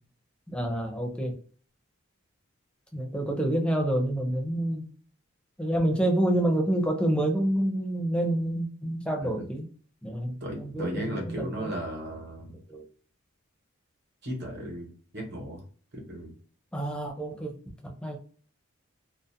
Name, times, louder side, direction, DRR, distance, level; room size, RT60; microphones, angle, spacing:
voice 1, 0.5-1.4 2.9-4.9 5.6-9.7 10.0-11.7 12.7-12.9 16.7-18.2, right 1 dB, 5° left, 1 dB, 0.5 m, -28 dB
voice 2, 10.4-12.6 14.2-15.6 15.9-16.3, equal, 50° right, 0 dB, 1.0 m, -36 dB
2.5 x 2.0 x 2.7 m, 0.43 s
head